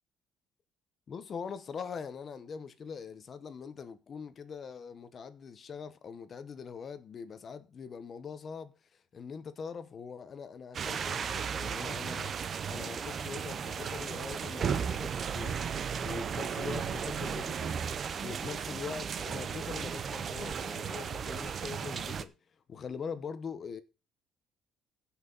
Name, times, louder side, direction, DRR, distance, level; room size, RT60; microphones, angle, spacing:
voice 1, 1.1-8.7 9.1-15.6 16.0-17.8 18.2-22.3 22.7-23.8, left 6 dB, 35° left, 1.0 m, -42 dB
sound 1, 10.7-22.2, right 7 dB, 35° right, 0.7 m, -35 dB
16.0 x 5.9 x 4.0 m
cardioid pair, 155°, 0 cm